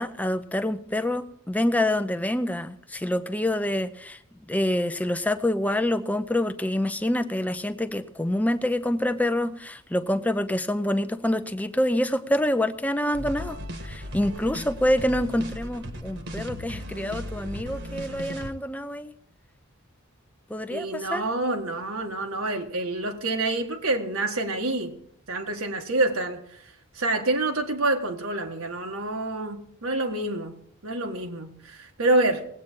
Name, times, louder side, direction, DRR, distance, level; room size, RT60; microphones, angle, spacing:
voice 1, 0.0-4.2 4.5-13.6 13.8-19.1 20.5-21.2, left 1 dB, 5° left, 0.5 m, -26 dB
sound 1, 13.1-18.5, equal, 55° right, 1.4 m, -36 dB
voice 2, 20.7-25.0 25.3-32.5, right 2 dB, 85° right, 1.6 m, -27 dB
20.0 x 8.6 x 4.5 m
head